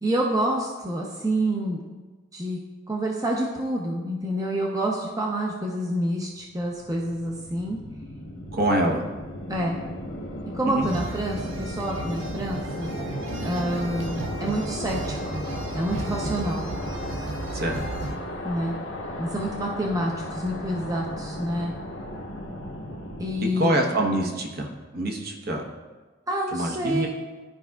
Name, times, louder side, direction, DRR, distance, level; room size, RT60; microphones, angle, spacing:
voice 1, 0.0-1.8 2.3-2.6 2.9-7.8 9.5-9.8 10.5-13.0 13.3-15.4 15.7-16.7 18.4-18.8 19.2-21.7 23.2-23.8 26.3-27.1, right 1 dB, 20° right, -1 dB, 0.6 m, -28 dB
sound 1, 6.4-23.5, left 1 dB, 70° left, 1.0 m, -35 dB
voice 2, 8.5-9.0 10.7-10.9 17.5-17.8 23.6-25.6 26.5-27.1, right 1 dB, 50° right, 1 dB, 0.9 m, -25 dB
sound 2, 10.8-18.2, right 2 dB, 75° right, 0.7 m, -34 dB
12.0 x 4.7 x 2.3 m, 1.3 s
head